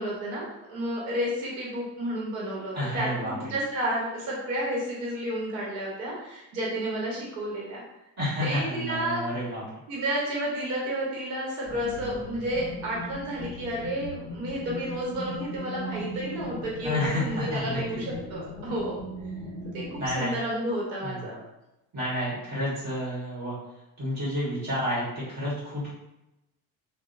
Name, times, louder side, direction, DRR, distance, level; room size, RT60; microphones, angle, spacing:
voice 1, 0.0-7.8 8.4-9.2 9.9-19.0 19.7-21.4, right 1 dB, 90° right, -4 dB, 0.9 m, -31 dB
voice 2, 2.7-3.5 8.2-9.6 16.8-18.2 20.0-20.4 21.0-21.3 21.9-23.5 24.0-25.9, equal, 40° right, -8 dB, 1.3 m, -30 dB
sound 1, 11.7-20.2, equal, 5° left, 1.2 m, -39 dB
2.8 x 2.0 x 2.5 m, 0.92 s
supercardioid pair, 85°, 40 cm